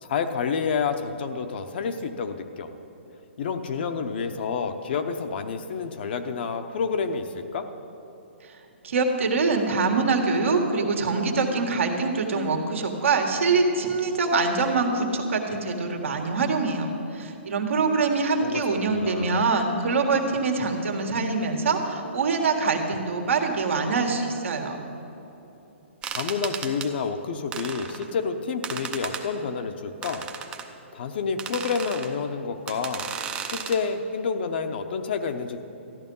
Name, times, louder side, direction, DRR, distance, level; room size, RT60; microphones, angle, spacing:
voice 1, 0.0-2.7 3.4-7.7 18.4-19.4 26.1-30.3 30.9-33.1 33.5-35.6, left 5 dB, 50° left, 7 dB, 0.9 m, -29 dB
voice 2, 8.8-24.8, right 4 dB, 75° right, 3 dB, 1.7 m, -24 dB
sound 1, 26.0-26.9 27.5-28.1 28.6-29.2 30.0-30.7 31.4-32.1 32.7-33.8, right 7 dB, 15° right, 0.6 m, -34 dB
13.5 x 10.5 x 5.5 m, 3.0 s
hypercardioid pair, 155°, 7 cm